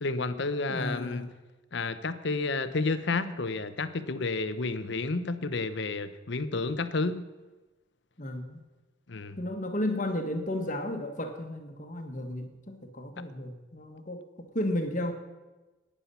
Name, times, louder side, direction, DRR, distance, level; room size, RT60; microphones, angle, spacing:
voice 1, 0.0-1.3 1.7-7.2 9.1-9.4, left 3 dB, 65° left, 12 dB, 0.8 m, -31 dB
voice 2, 0.7-1.3 8.2-8.6 9.4-15.1, left 1 dB, 40° left, 5 dB, 1.4 m, -33 dB
12.0 x 9.8 x 5.6 m, 1.1 s
head